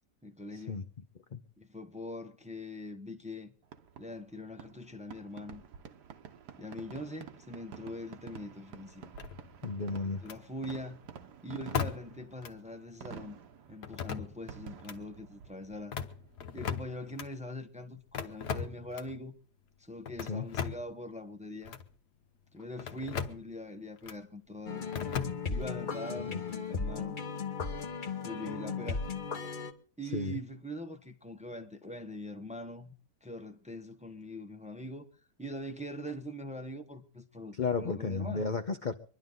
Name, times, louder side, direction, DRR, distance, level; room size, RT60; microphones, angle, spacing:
voice 1, 0.2-0.9 1.6-3.5 4.0-5.6 6.6-9.1 10.2-11.0 11.4-13.4 13.7-16.0 16.5-19.3 19.8-21.8 22.5-24.8 25.5-27.2 28.2-29.0 30.0-32.9 33.2-35.1 35.4-38.5, left 1 dB, 5° right, 0.7 m, -42 dB
Fireworks, 3.6-17.2, right 7 dB, 70° right, 1.6 m, -50 dB
sound 1, 9.2-9.7 10.2-10.4 11.7-12.2 12.4-12.5 13.8-14.5 14.8-15.0 15.8-17.3 18.1-19.2 20.1-20.9 21.6-21.9 22.8-23.5 24.0-24.2 24.9-25.7, left 7 dB, 75° left, 1.5 m, -37 dB
voice 2, 9.6-10.2 20.3-20.5 26.3-26.4 30.1-30.4 37.5-38.9, left 4 dB, 55° left, 0.5 m, -33 dB
sound 2, 24.7-29.7, left 5 dB, 35° left, 0.9 m, -36 dB
25.0 x 11.0 x 3.9 m
omnidirectional pair, 1.8 m